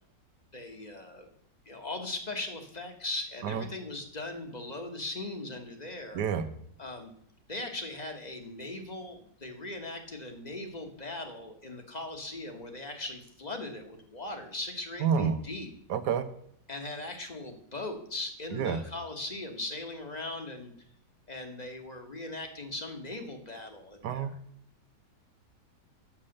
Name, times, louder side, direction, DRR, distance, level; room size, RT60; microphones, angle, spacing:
voice 1, 0.5-1.3 1.6-6.2 6.8-7.1 7.5-15.7 16.7-20.7 21.3-24.3, left 2 dB, 25° left, 4 dB, 1.2 m, -39 dB
voice 2, 6.1-6.4 15.0-15.4 15.9-16.3 18.5-18.8 24.0-24.3, right 7 dB, 75° right, 10 dB, 1.4 m, -28 dB
8.8 x 7.2 x 6.5 m, 0.68 s
omnidirectional pair, 1.8 m